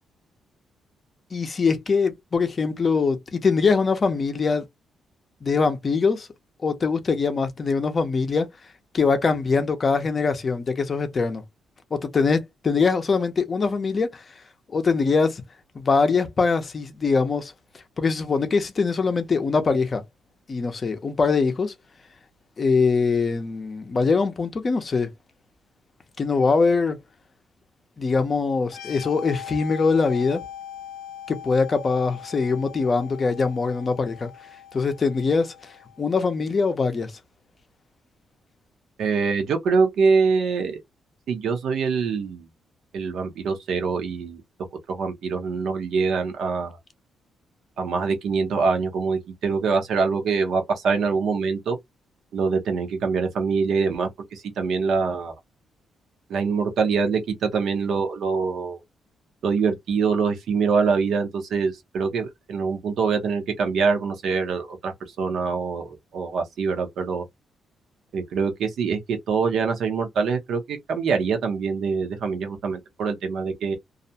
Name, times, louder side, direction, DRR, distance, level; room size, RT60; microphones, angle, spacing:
voice 1, 1.3-4.6 5.4-6.3 6.6-8.5 8.9-11.4 11.9-14.2 14.7-15.4 15.7-17.5 18.0-20.0 20.5-21.7 22.6-25.1 26.2-27.0 28.0-30.4 31.3-34.3 34.7-35.5 36.0-37.1, left 4 dB, 35° left, 0.5 m, -22 dB
sound 1, 28.7-36.2, left 10 dB, 85° left, 0.5 m, -41 dB
voice 2, 39.0-40.8 41.3-42.5 42.9-44.4 44.9-46.8 47.8-51.8 52.3-55.3 56.3-58.8 59.4-64.9 65.2-65.9 66.1-67.2 68.1-73.8, right 5 dB, 70° right, 0.7 m, -24 dB
2.4 x 2.1 x 2.7 m
cardioid pair, 125°, 0 cm